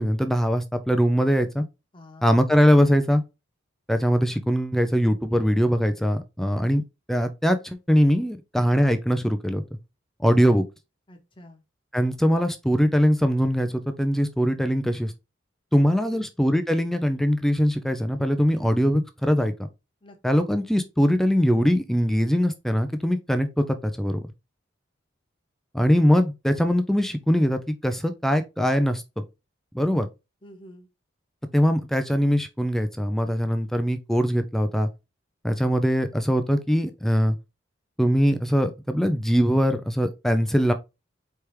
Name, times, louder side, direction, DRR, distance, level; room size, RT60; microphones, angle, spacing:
voice 1, 0.0-1.6 2.2-3.2 3.9-6.8 7.1-9.6 10.2-10.6 11.9-15.1 15.7-19.5 20.2-24.2 25.7-29.0 29.7-30.1 31.5-34.9 35.4-37.4 38.0-40.7, equal, ahead, 0.4 m, -22 dB
voice 2, 1.9-2.3 11.1-11.6 15.7-16.3 20.0-20.5 30.4-30.9, equal, 25° left, 1.0 m, -48 dB
4.5 x 3.4 x 3.2 m
head